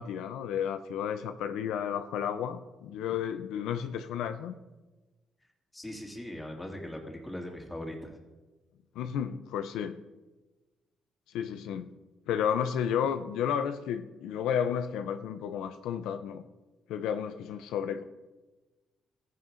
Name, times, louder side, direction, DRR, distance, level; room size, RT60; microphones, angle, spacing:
voice 1, 0.0-4.5 9.0-10.0 11.3-11.9 12.3-16.4 16.9-18.0, left 8 dB, 90° left, 9 dB, 0.5 m, -32 dB
voice 2, 5.7-8.2, left 1 dB, 15° left, 1 dB, 2.1 m, -40 dB
13.5 x 10.5 x 2.5 m, 1.2 s
cardioid pair, 90°, 0 cm